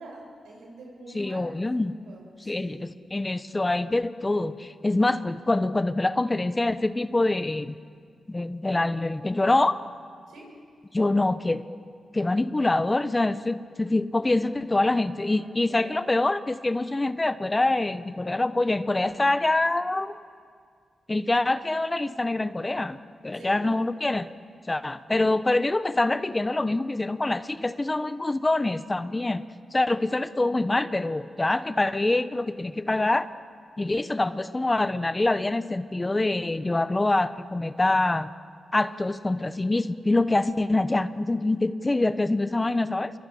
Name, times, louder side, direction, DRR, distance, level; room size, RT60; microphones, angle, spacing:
voice 1, 0.0-2.8 10.3-10.7 15.3-16.2 23.3-23.6, right 1 dB, 85° right, -1 dB, 7.5 m, -46 dB
voice 2, 1.1-1.9 2.4-7.7 8.3-9.8 10.9-11.6 12.1-20.2 21.1-24.3 24.7-29.4 29.7-33.3 33.8-38.3 38.7-43.1, left 2 dB, 25° left, 12 dB, 1.1 m, -25 dB
28.5 x 23.0 x 8.6 m, 2.1 s
cardioid pair, 50°, 0 cm